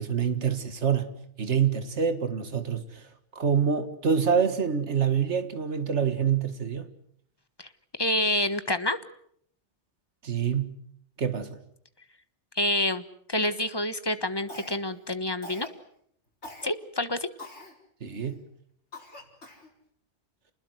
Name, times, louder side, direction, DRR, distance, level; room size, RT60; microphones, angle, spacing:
voice 1, 0.0-6.9 10.2-10.8 11.2-11.6 18.0-18.4, right 7 dB, 75° right, 2.1 m, -26 dB
voice 2, 8.0-9.0 12.5-13.0 13.3-15.7 16.6-17.3, left 1 dB, 20° left, 1.3 m, -27 dB
Cough, 14.5-15.0 15.4-15.8 16.4-16.7 17.4-17.7 18.3-18.4 18.9-19.7, left 2 dB, 70° left, 5.0 m, -43 dB
29.0 x 20.5 x 8.0 m
omnidirectional pair, 1.2 m